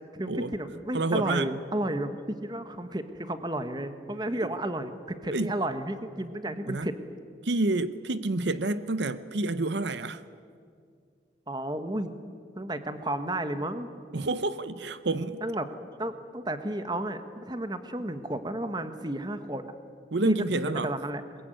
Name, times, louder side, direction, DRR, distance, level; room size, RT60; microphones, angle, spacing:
voice 1, 0.1-7.0 11.5-12.1 12.5-13.9 15.4-15.7 16.0-19.6 20.2-20.5 20.8-21.2, right 1 dB, 25° right, 9 dB, 1.3 m, -32 dB
voice 2, 0.9-1.5 5.3-5.5 6.7-6.9 7.4-10.2 14.1-15.4 20.1-20.9, right 2 dB, 75° right, 14 dB, 0.8 m, -28 dB
22.0 x 22.0 x 9.2 m, 2.2 s
head